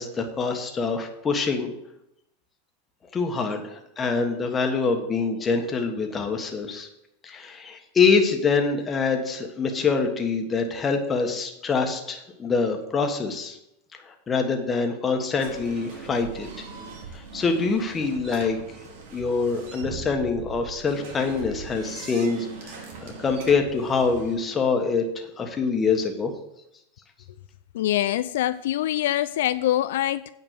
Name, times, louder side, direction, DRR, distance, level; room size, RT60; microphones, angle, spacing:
voice 1, 0.0-1.7 3.1-6.9 7.2-13.6 14.0-16.5 17.1-18.6 19.1-26.3, left 4 dB, 20° left, 1.4 m, -25 dB
sound 1, 15.4-24.4, right 5 dB, 70° right, 2.3 m, -41 dB
voice 2, 27.7-30.3, left 13 dB, 80° left, 0.3 m, -24 dB
9.0 x 5.3 x 6.8 m
supercardioid pair, 130°, 0 cm